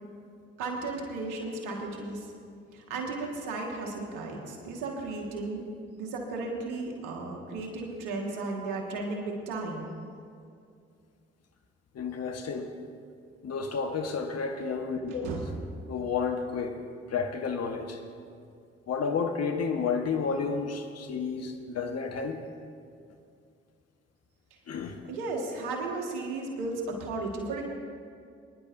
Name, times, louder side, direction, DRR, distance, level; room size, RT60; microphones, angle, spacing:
voice 1, 0.6-2.3 2.7-5.6 6.0-9.9 15.2-15.5 25.1-27.6, right 3 dB, 80° right, 1 dB, 1.8 m, -34 dB
voice 2, 11.9-12.7 13.4-15.3 15.9-16.8 17.1-18.0 18.9-22.4 24.7-25.0, left 5 dB, 55° left, 5 dB, 1.3 m, -31 dB
23.5 x 10.5 x 2.6 m, 2.3 s
hypercardioid pair, 40°, 30 cm